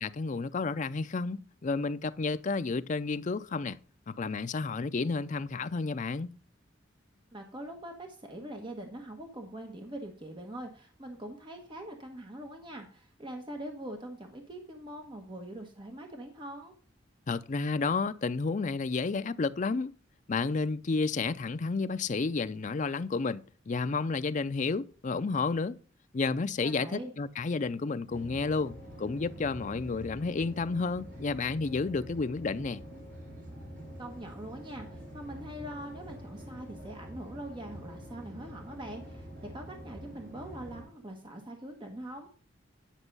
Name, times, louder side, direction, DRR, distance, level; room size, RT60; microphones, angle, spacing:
voice 1, 0.0-3.8 4.1-6.3 17.3-19.9 20.3-25.8 26.1-32.8, left 4 dB, 40° left, 0.5 m, -31 dB
voice 2, 7.3-16.7 26.6-27.1 34.0-42.3, right 1 dB, 25° right, 1.2 m, -43 dB
sound 1, 28.1-40.8, equal, 45° right, 5.6 m, -46 dB
10.0 x 6.0 x 5.4 m
head